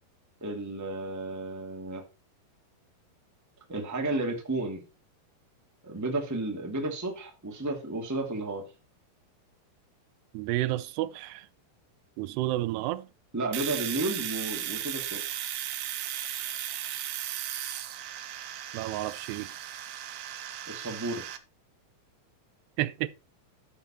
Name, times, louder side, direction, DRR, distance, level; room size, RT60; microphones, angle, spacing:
voice 1, 0.4-2.0 3.7-4.8 5.8-8.7 13.3-15.2 20.7-21.2, right 2 dB, 5° right, 1.3 m, -32 dB
voice 2, 10.3-11.5 12.2-13.1 18.7-19.5 22.8-23.1, right 16 dB, 90° right, 2.8 m, -31 dB
Domestic sounds home sounds, 13.5-21.4, right 11 dB, 70° right, 2.3 m, -36 dB
12.0 x 6.8 x 4.3 m
omnidirectional pair, 4.7 m